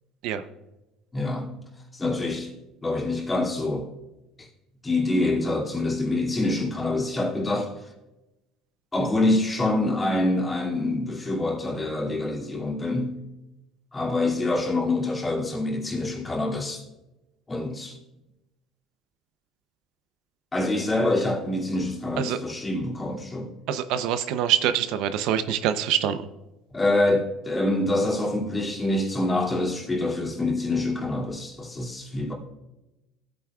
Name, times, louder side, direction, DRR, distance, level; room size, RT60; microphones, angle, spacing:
voice 1, 1.1-1.6 1.9-2.5 2.8-3.9 4.4-4.5 4.8-7.9 8.9-13.2 13.9-16.8 17.5-18.0 20.5-23.5 26.7-32.3, left 2 dB, 15° left, 2.6 m, -26 dB
voice 2, 23.7-26.2, right 10 dB, 70° right, 0.7 m, -25 dB
16.5 x 9.1 x 2.4 m
cardioid pair, 120°, 0 cm